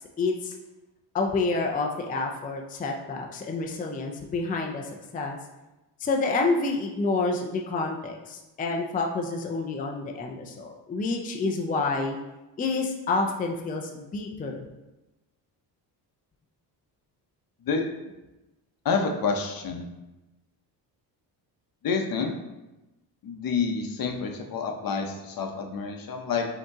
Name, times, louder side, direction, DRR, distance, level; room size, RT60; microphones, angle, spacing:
voice 1, 0.2-0.5 1.1-5.4 6.0-12.2 12.6-14.7, left 3 dB, 20° left, 1 dB, 0.4 m, -28 dB
voice 2, 18.8-19.9 21.8-22.3 23.2-26.5, left 5 dB, 55° left, 3 dB, 0.7 m, -28 dB
5.2 x 2.9 x 3.5 m, 1.0 s
cardioid pair, 110°, 43 cm